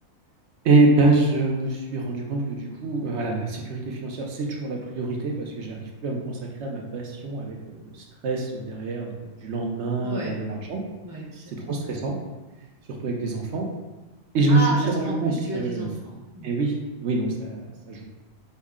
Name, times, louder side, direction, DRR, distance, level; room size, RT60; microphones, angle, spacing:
voice 1, 0.6-10.8 11.7-12.1 13.0-13.7 14.3-14.6 14.9-15.9 16.4-18.0, right 3 dB, 60° right, 0 dB, 0.9 m, -25 dB
voice 2, 10.0-10.4 11.0-11.8 14.5-14.8 15.0-16.5, equal, 20° right, -4 dB, 0.7 m, -33 dB
5.4 x 2.1 x 3.6 m, 1.2 s
omnidirectional pair, 1.4 m